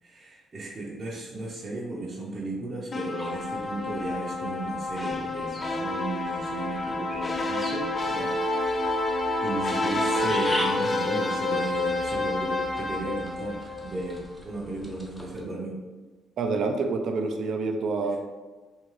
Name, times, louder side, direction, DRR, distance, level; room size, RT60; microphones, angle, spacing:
voice 1, 0.0-8.3 8.6-15.7, right 2 dB, 35° right, -6 dB, 0.7 m, -35 dB
sound 1, 2.9-14.2, left 2 dB, 35° left, 0.4 m, -29 dB
starling bird moving and twittering in a cave, 3.2-15.4, equal, 5° left, 0.7 m, -42 dB
voice 2, 16.4-18.2, right 4 dB, 65° right, 5 dB, 0.4 m, -27 dB
3.6 x 2.5 x 3.1 m, 1.3 s
cardioid pair, 90°, 0 cm